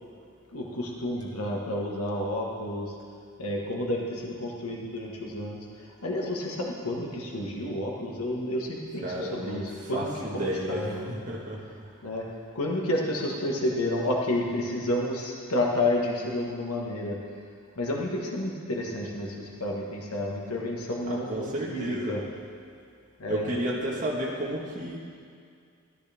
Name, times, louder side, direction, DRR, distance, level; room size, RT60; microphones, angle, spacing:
voice 1, 0.5-2.9 3.4-11.1 12.0-12.3 12.5-17.2 17.8-22.2 23.2-23.5, left 1 dB, 90° left, -2 dB, 1.6 m, -30 dB
voice 2, 9.0-9.7 9.9-11.6 21.1-22.1 23.3-25.0, right 1 dB, 35° right, -4 dB, 1.5 m, -32 dB
13.5 x 11.5 x 3.5 m, 2.2 s
head